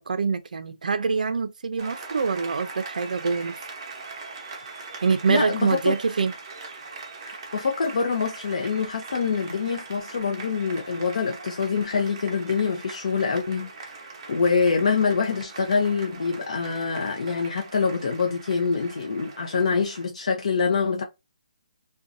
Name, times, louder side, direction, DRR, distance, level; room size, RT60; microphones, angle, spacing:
voice 1, 0.1-3.5 5.0-6.3, right 5 dB, 80° right, 0.4 m, -25 dB
Applause, 1.8-20.1, right 4 dB, 35° right, 0.7 m, -41 dB
voice 2, 5.3-5.9 7.3-14.0 14.3-21.0, left 5 dB, 55° left, 0.5 m, -25 dB
2.6 x 2.2 x 2.5 m
hypercardioid pair, 170°, 4 cm